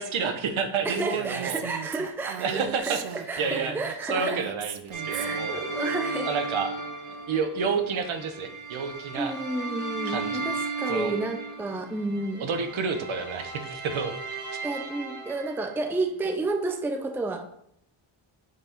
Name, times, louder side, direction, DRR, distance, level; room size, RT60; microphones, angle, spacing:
voice 1, 0.0-1.6 2.4-3.0 3.4-3.7 4.0-5.6 6.2-6.7 7.1-9.3 10.1-10.4 10.9-11.1 12.4-14.1, right 5 dB, 70° right, 7 dB, 1.0 m, -29 dB
voice 2, 0.8-2.5 2.8-3.0 3.3-4.4 5.1-6.3 9.2-12.5 14.6-17.4, right 2 dB, 5° right, 5 dB, 0.4 m, -31 dB
Female speech woman speaking, 0.9-5.5, right 9 dB, 85° right, 0.6 m, -37 dB
sound 1, 4.9-15.9, right 3 dB, 40° right, 2.1 m, -35 dB
6.3 x 4.6 x 4.4 m, 0.71 s
wide cardioid pair, 155°, 49 cm